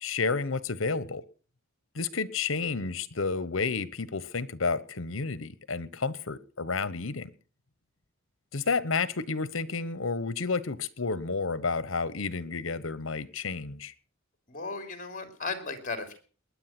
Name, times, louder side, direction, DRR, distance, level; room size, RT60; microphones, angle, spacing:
voice 1, 0.0-1.2 1.9-7.3 8.5-13.9, left 4 dB, 75° left, 1.1 m, -31 dB
voice 2, 14.5-16.2, left 3 dB, 40° left, 3.3 m, -36 dB
20.5 x 10.0 x 6.0 m
head